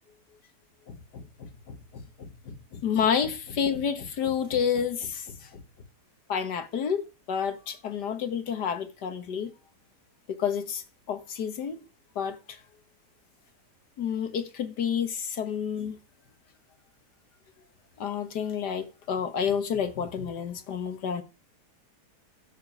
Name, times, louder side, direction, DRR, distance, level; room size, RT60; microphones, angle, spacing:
voice 1, 0.9-5.6 6.3-9.5 10.3-11.8 12.2-12.6 14.0-16.0 18.0-21.2, left 7 dB, 90° left, 2.0 m, -30 dB
12.0 x 7.5 x 6.2 m
omnidirectional pair, 1.8 m